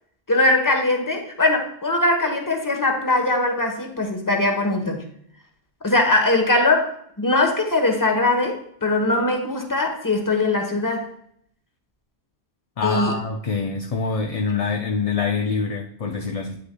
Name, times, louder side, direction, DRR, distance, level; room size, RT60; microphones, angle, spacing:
voice 1, 0.3-5.0 5.8-6.9 7.2-11.1 12.8-13.2, left 2 dB, 20° left, 3 dB, 1.1 m, -21 dB
voice 2, 12.8-16.6, left 4 dB, 45° left, 2 dB, 0.6 m, -25 dB
9.6 x 6.5 x 2.2 m, 0.68 s
omnidirectional pair, 1.1 m